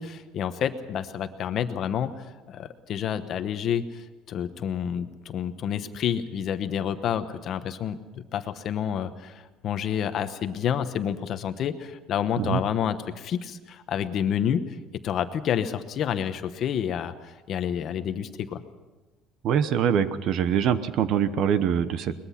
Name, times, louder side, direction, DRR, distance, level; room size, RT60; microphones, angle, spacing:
voice 1, 0.0-14.6 15.0-18.6, left 9 dB, 35° left, 10 dB, 1.0 m, -29 dB
voice 2, 19.4-22.1, right 8 dB, 40° right, 13 dB, 0.9 m, -24 dB
22.5 x 21.0 x 5.8 m, 1.2 s
cardioid pair, 180°, 0 cm